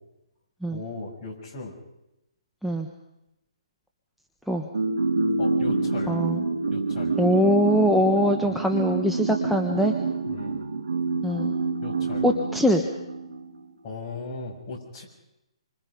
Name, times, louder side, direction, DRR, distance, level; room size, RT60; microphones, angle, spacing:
voice 1, 0.7-1.8 5.4-6.2 6.7-7.1 8.4-8.6 10.3-10.6 11.8-12.3 13.8-15.0, left 3 dB, 30° left, -2 dB, 7.5 m, -37 dB
sound 1, 4.7-13.5, right 3 dB, 80° right, 4.0 m, -27 dB
voice 2, 6.1-6.4 7.2-9.9 11.2-11.5 12.2-12.8, equal, ahead, 1 dB, 1.3 m, -22 dB
27.5 x 25.5 x 5.3 m, 0.90 s
hypercardioid pair, 145°, 3 cm